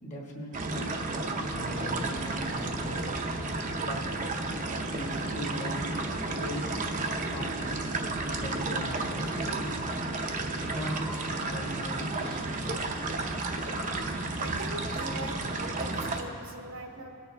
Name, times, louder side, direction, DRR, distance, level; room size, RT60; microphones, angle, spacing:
voice 1, 0.0-1.1 1.5-3.2 3.8-4.1 4.9-6.0 6.3-6.8 7.2-7.7 8.2-10.0 10.7-12.9, equal, 35° left, -1 dB, 1.4 m, -40 dB
sound 1, 0.5-16.2, right 2 dB, 35° right, 0.7 m, -32 dB
sound 2, 1.6-3.5 3.8-5.5 5.9-7.9 8.4-10.2 10.7-12.5 13.5-15.3, equal, 5° left, 0.8 m, -47 dB
voice 2, 14.4-17.1, right 1 dB, 65° right, 3 dB, 1.0 m, -41 dB
19.5 x 6.8 x 3.4 m, 2.7 s
head